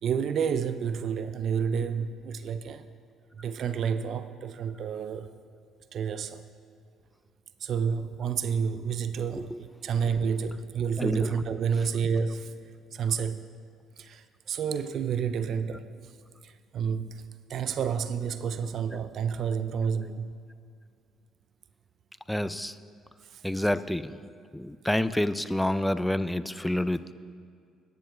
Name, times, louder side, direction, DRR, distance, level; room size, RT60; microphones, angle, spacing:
voice 1, 0.0-2.9 3.4-5.3 5.9-6.4 7.6-12.5 12.9-13.5 14.0-15.9 16.4-17.2 17.5-20.3 23.3-23.7, right 7 dB, 60° right, 0.4 m, -30 dB
voice 2, 11.0-11.3 22.3-22.8 23.4-24.2 24.5-27.1, left 1 dB, 5° left, 0.4 m, -28 dB
21.5 x 10.0 x 2.3 m
hypercardioid pair, 55°, 0 cm